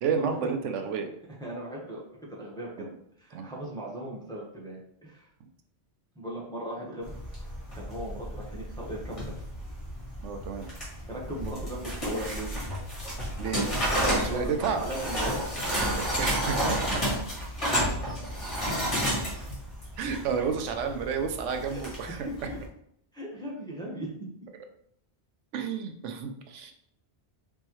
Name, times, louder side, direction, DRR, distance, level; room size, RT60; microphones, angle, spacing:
voice 1, 0.0-1.1 2.8-2.9 3.3-3.5 10.2-10.7 13.4-13.7 14.2-14.8 15.7-16.8 20.0-22.3 25.5-26.7, right 6 dB, 85° right, 6 dB, 0.9 m, -31 dB
voice 2, 1.4-2.9 3.2-5.3 6.1-7.1 7.7-9.2 11.1-12.5 14.0-15.4 15.9-16.0 21.7-21.8 22.1-22.6 23.1-24.1, right 1 dB, 5° left, -4 dB, 1.0 m, -38 dB
sound 1, 7.0-22.6, equal, 30° left, 1.6 m, -31 dB
4.2 x 3.6 x 3.0 m, 0.71 s
omnidirectional pair, 1.2 m